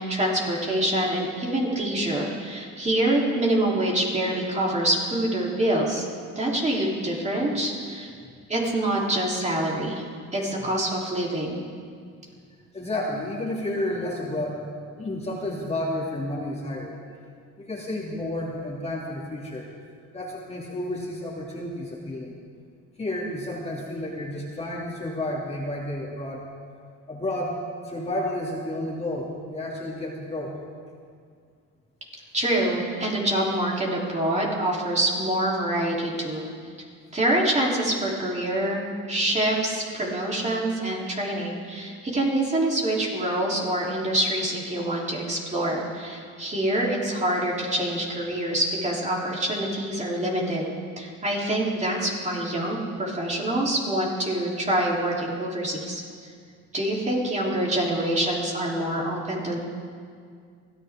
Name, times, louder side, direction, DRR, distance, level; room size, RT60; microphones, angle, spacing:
voice 1, 0.1-6.0 6.4-8.1 8.5-10.0 10.3-11.6 32.3-36.4 37.1-50.7 51.0-56.0 56.7-59.6, right 1 dB, 25° right, -4 dB, 3.6 m, -26 dB
voice 2, 12.7-14.7 15.0-16.9 17.6-19.7 20.1-22.4 23.0-26.5 27.1-27.6 27.8-30.6, left 1 dB, 20° left, -4 dB, 2.8 m, -31 dB
23.5 x 14.5 x 3.8 m, 2.1 s
cardioid pair, 100°, 29 cm